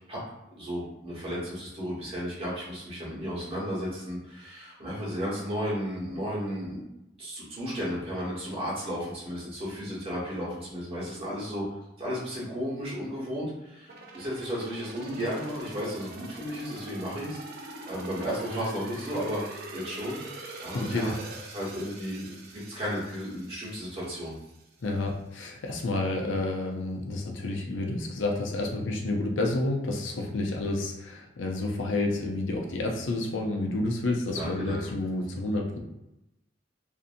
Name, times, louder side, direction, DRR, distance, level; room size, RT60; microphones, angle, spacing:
voice 1, 0.6-6.8 7.2-11.6 12.0-21.1 21.5-24.3 34.4-34.8, equal, 30° right, -7 dB, 1.1 m, -34 dB
sound 1, 13.9-24.6 25.0-25.1, right 2 dB, 55° right, 0.5 m, -44 dB
voice 2, 20.7-21.2 24.8-35.8, left 2 dB, 85° left, 1 dB, 0.5 m, -30 dB
2.6 x 2.6 x 2.5 m, 0.90 s
head